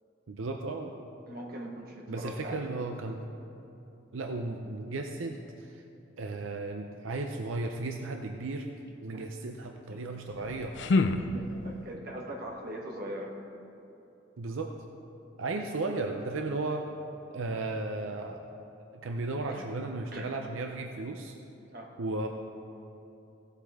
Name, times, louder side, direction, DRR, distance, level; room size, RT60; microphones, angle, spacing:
voice 1, 0.3-0.9 2.1-3.2 4.1-5.8 6.2-8.7 9.0-10.8 14.4-14.8 15.4-16.9 17.3-18.5 18.9-21.3 22.0-22.3, right 2 dB, 85° right, 3 dB, 0.6 m, -35 dB
voice 2, 1.3-2.7 9.1-9.3 9.9-10.0 10.7-13.3 19.5-19.7 20.1-20.3 21.7-21.9, equal, 50° right, 0 dB, 1.3 m, -41 dB
sound 1, 10.3-11.9, left 3 dB, 60° left, 0.4 m, -29 dB
16.0 x 8.3 x 3.6 m, 2.8 s
head